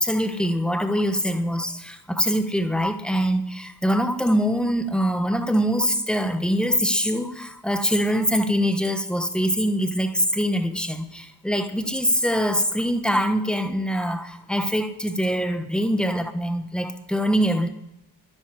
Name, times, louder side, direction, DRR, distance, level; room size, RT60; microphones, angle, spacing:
voice 1, 0.0-17.7, equal, ahead, 8 dB, 1.3 m, -23 dB
10.5 x 10.5 x 9.5 m, 0.88 s
wide cardioid pair, 100°, 41 cm